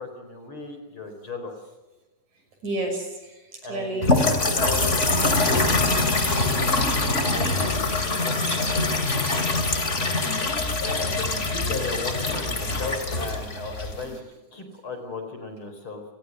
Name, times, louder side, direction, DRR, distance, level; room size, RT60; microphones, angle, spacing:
voice 1, 0.0-1.5 3.6-5.0 5.2-7.8 8.2-8.8 10.8-14.2 14.5-16.0, left 3 dB, 40° left, 6 dB, 5.0 m, -36 dB
voice 2, 2.6-4.2 9.6-9.8 10.2-10.7, right 2 dB, 65° right, 4 dB, 7.5 m, -32 dB
sound 1, 4.0-14.2, left 2 dB, 25° left, 2.7 m, -24 dB
29.5 x 21.0 x 6.3 m, 1.1 s
omnidirectional pair, 3.6 m